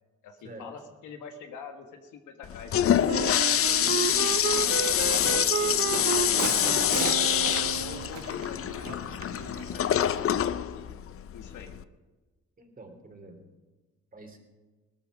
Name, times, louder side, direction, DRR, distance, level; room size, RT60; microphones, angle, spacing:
voice 1, 0.2-4.0 4.7-5.9 7.6-11.1 11.3-11.7, left 6 dB, 85° left, 5 dB, 1.7 m, -45 dB
Toilet flush, 2.4-11.8, left 10 dB, 50° left, 0.6 m, -26 dB
Walk footsteps, 2.9-10.3, right 7 dB, 70° right, 1.5 m, -40 dB
Wind instrument woodwind instrument, 3.1-8.1, right 9 dB, 50° right, 0.6 m, -32 dB
voice 2, 6.6-7.0 12.6-13.4 14.1-14.4, right 2 dB, 30° right, 4 dB, 3.0 m, -47 dB
18.0 x 13.0 x 5.0 m, 1.3 s
cardioid pair, 90°, 30 cm